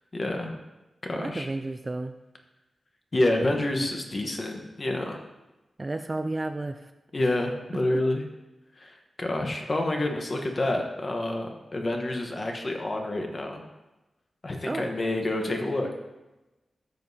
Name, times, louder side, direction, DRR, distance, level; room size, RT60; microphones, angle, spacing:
voice 1, 0.1-0.6 1.0-1.5 3.1-5.2 7.1-8.2 8.7-13.6 14.4-15.9, left 1 dB, 30° left, 3 dB, 1.0 m, -28 dB
voice 2, 1.1-2.1 5.8-6.9 14.6-14.9, right 2 dB, 25° right, 8 dB, 0.3 m, -32 dB
12.5 x 7.5 x 2.7 m, 1.1 s
wide cardioid pair, 175°, 0 cm